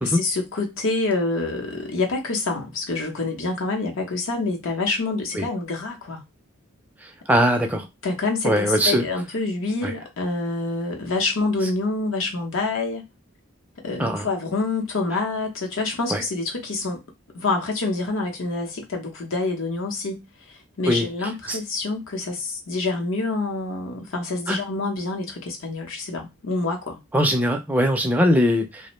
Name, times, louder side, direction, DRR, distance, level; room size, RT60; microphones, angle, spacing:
voice 1, 0.0-6.2 7.3-7.4 8.0-13.1 13.8-17.0 17.3-20.2 20.8-27.0, left 3 dB, 70° left, 0.8 m, -27 dB
voice 2, 7.3-7.9 8.4-9.0 9.8-9.9 14.0-14.3 16.1-16.2 20.9-21.1 21.5-21.6 24.5-24.6 27.1-28.8, equal, 10° right, 0.3 m, -20 dB
2.5 x 2.1 x 3.0 m
head